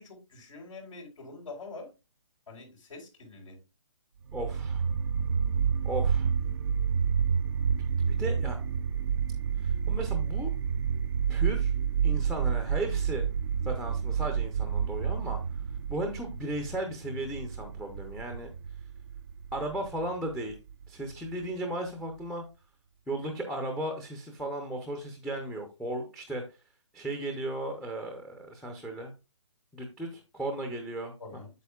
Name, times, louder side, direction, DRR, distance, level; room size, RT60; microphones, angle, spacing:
voice 1, 0.0-1.9 2.5-3.6 31.2-31.5, left 3 dB, 80° left, -6 dB, 4.3 m, -45 dB
voice 2, 4.3-4.8 5.8-6.3 8.0-8.6 9.6-10.5 11.3-11.8 12.0-13.3 13.6-15.6 15.9-18.5 19.5-20.6 20.9-22.4 23.1-26.6 26.9-29.1 29.7-31.1, right 1 dB, ahead, 4 dB, 0.6 m, -35 dB
sound 1, 4.3-21.3, right 7 dB, 50° right, 0.4 m, -29 dB
8.2 x 7.6 x 2.3 m, 0.28 s
hypercardioid pair, 155°, 17 cm